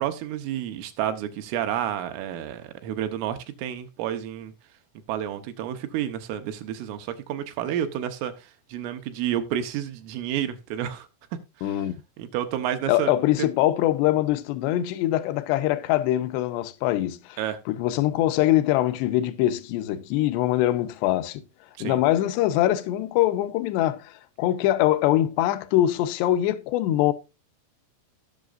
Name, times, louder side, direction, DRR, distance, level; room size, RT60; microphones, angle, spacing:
voice 1, 0.0-4.5 5.1-11.1 11.6-11.9 12.2-13.1 17.4-17.6 21.8-22.0, right 10 dB, 80° right, 3.6 m, -30 dB
voice 2, 11.6-11.9 12.9-17.4 17.7-21.4 21.8-27.1, left 14 dB, 80° left, 2.5 m, -23 dB
19.5 x 6.5 x 2.5 m
omnidirectional pair, 5.8 m